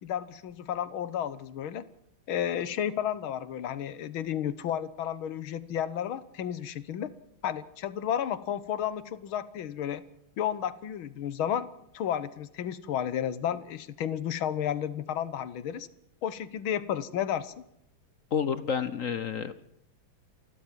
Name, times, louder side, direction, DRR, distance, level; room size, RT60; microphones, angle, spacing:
voice 1, 0.0-1.9 2.3-7.1 7.4-10.0 10.4-11.7 11.9-15.9 16.2-17.5, left 9 dB, 75° left, 16 dB, 1.9 m, -32 dB
voice 2, 18.3-19.5, left 7 dB, 55° left, 14 dB, 1.0 m, -29 dB
28.5 x 12.0 x 7.6 m, 0.76 s
omnidirectional pair, 2.3 m